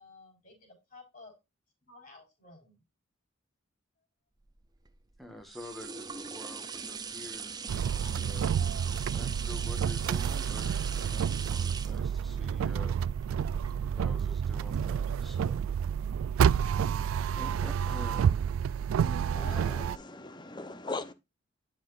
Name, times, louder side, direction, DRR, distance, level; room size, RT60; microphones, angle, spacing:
voice 1, 0.0-1.3 1.8-2.8, left 3 dB, 40° left, 4.3 m, -55 dB
sound 1, 4.5-14.2 14.7-14.8, right 5 dB, 20° right, 0.7 m, -41 dB
voice 2, 5.2-7.6 8.1-8.5 9.1-13.0 13.9-15.6 17.4-18.5 19.0-19.9, left 1 dB, ahead, 1.5 m, -47 dB
sound 2, 7.7-20.0, right 8 dB, 85° right, 0.3 m, -29 dB
voice 3, 19.3-21.1, left 3 dB, 20° left, 0.8 m, -40 dB
10.5 x 5.8 x 2.6 m
head